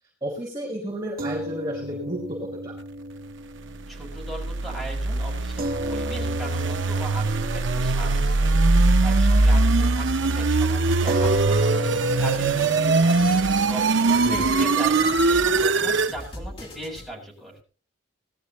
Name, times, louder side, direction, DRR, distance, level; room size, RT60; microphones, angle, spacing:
voice 1, 0.2-2.7 14.2-14.7, right 1 dB, 25° right, -5 dB, 5.5 m, -32 dB
sound 1, 1.2-9.7 10.0-10.2 11.1-17.6, right 1 dB, 50° right, 1.0 m, -34 dB
voice 2, 3.9-13.3 13.6-17.5, right 1 dB, ahead, -4 dB, 7.3 m, -38 dB
sound 2, 4.0-16.1, right 3 dB, 70° right, 0.7 m, -21 dB
sound 3, 11.1-17.1, left 1 dB, 30° left, 2.7 m, -40 dB
20.5 x 14.0 x 3.1 m, 0.36 s
head